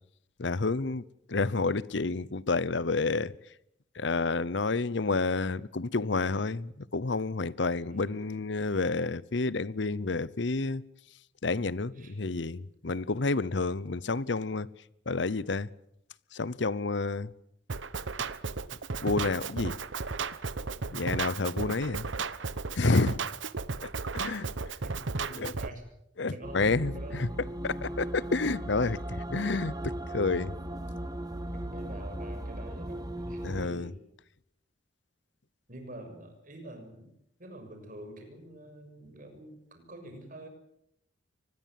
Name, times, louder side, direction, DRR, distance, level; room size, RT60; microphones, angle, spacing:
voice 1, 0.4-1.0 1.3-3.3 4.0-10.8 11.4-14.7 15.1-15.7 16.3-17.3 19.0-19.8 20.9-22.1 22.7-23.2 23.8-23.9 24.1-24.5 25.4-25.5 26.2-27.3 27.6-29.0 29.3-30.5 33.4-33.9, left 3 dB, 70° left, 0.9 m, -29 dB
voice 2, 7.8-8.2 11.9-12.2 24.8-25.9 26.3-27.5 31.5-34.0 35.7-37.1 37.4-40.5, right 1 dB, 45° right, 6.6 m, -46 dB
Drum kit, 17.7-25.7, right 4 dB, 90° right, 1.0 m, -34 dB
sound 1, 26.4-33.7, right 1 dB, 20° right, 1.5 m, -37 dB
24.0 x 20.5 x 7.7 m
head